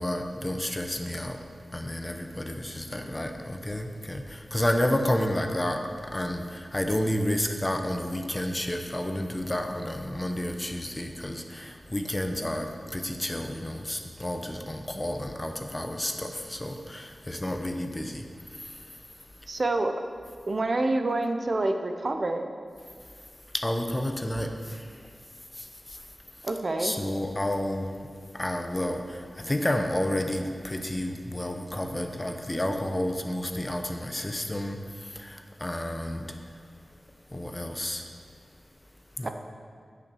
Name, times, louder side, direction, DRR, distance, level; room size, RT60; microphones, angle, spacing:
voice 1, 0.0-1.4 1.7-18.8 23.5-25.0 25.5-26.0 26.8-27.9 28.3-36.4 37.3-38.1 39.2-39.3, left 1 dB, 20° left, 5 dB, 0.8 m, -31 dB
voice 2, 19.5-20.0 20.5-22.5 26.4-27.0 39.2-39.3, right 2 dB, 50° right, 6 dB, 0.6 m, -27 dB
9.5 x 5.9 x 6.2 m, 2.1 s
wide cardioid pair, 90°, 0 cm